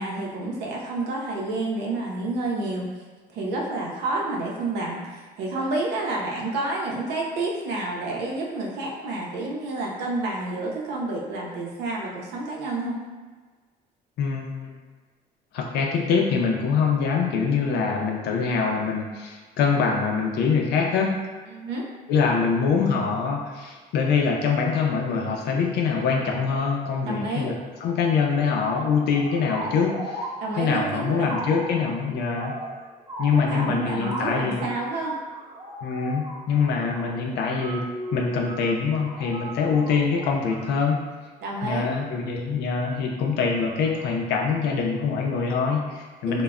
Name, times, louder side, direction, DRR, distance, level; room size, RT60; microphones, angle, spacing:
voice 1, 0.0-2.9 3.3-13.0 21.5-21.9 27.1-27.6 30.4-31.5 33.3-35.2 41.4-41.9 46.3-46.4, right 2 dB, 85° right, -2 dB, 0.6 m, -29 dB
voice 2, 14.2-14.8 15.5-21.1 22.1-27.5 27.8-29.9 30.5-32.5 33.2-34.7 35.8-37.8 38.1-41.0 41.6-46.4, left 5 dB, 75° left, 1 dB, 0.5 m, -24 dB
sound 1, 29.1-41.0, equal, 20° right, 0.6 m, -37 dB
2.2 x 2.1 x 3.5 m, 1.4 s
cardioid pair, 110°, 17 cm